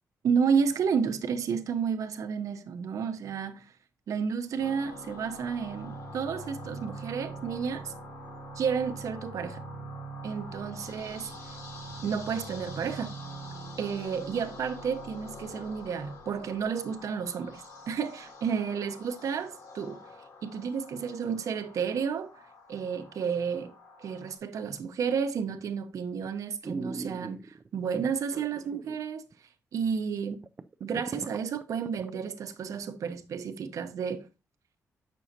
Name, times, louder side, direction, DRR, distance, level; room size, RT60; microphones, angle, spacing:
voice 1, 0.2-3.7 4.1-7.9 8.6-9.6 10.2-11.3 12.0-13.2 13.8-20.0 20.4-22.3 22.7-23.7 24.0-29.2 29.7-30.4 30.8-34.3, right 6 dB, 70° right, 0.9 m, -31 dB
sound 1, 4.6-24.4, right 1 dB, 70° left, 2.7 m, -44 dB
sound 2, 25.5-25.8 26.3-26.4 26.6-27.7 28.3-29.0 29.3-29.4 29.9-30.0 30.2-32.1 32.5-32.6, right 3 dB, 25° right, 0.4 m, -39 dB
8.4 x 6.2 x 2.8 m
wide cardioid pair, 150°, 6 cm